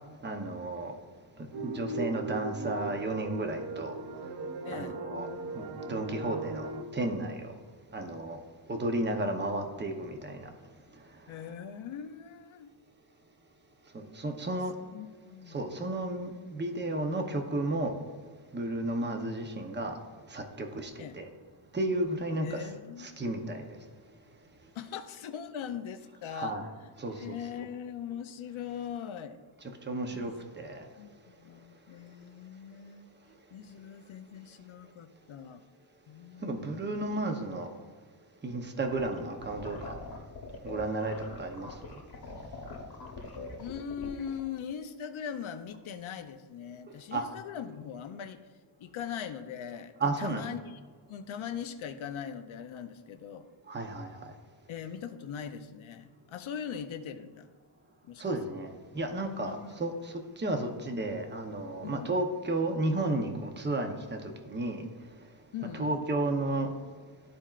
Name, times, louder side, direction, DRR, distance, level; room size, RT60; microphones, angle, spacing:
voice 1, 0.2-0.9 1.4-4.0 4.7-5.3 5.5-7.5 7.9-8.4 8.7-10.5 13.9-14.7 15.5-18.0 18.5-20.0 20.3-21.3 21.7-22.7 23.0-23.8 26.3-26.7 27.0-27.6 29.6-30.9 36.4-37.7 38.4-39.9 40.6-42.0 47.1-47.2 50.0-50.5 53.7-54.3 58.2-64.9 65.7-66.7, right 2 dB, 20° right, 0.8 m, -33 dB
sound 1, 1.5-6.8, right 3 dB, 55° right, 0.6 m, -38 dB
voice 2, 4.6-5.0 11.3-12.7 14.8-15.7 21.0-21.2 22.3-23.1 24.7-26.6 27.2-29.4 30.1-30.3 31.0-33.1 33.5-35.6 36.1-37.0 43.6-48.4 48.8-50.6 51.1-53.5 54.7-57.5 58.0-58.2 59.4-59.7 61.8-62.1 65.5-66.1, left 8 dB, 70° left, 0.7 m, -41 dB
sound 2, 38.9-44.4, left 3 dB, 45° left, 1.2 m, -43 dB
13.0 x 4.3 x 2.5 m
wide cardioid pair, 110°, 50 cm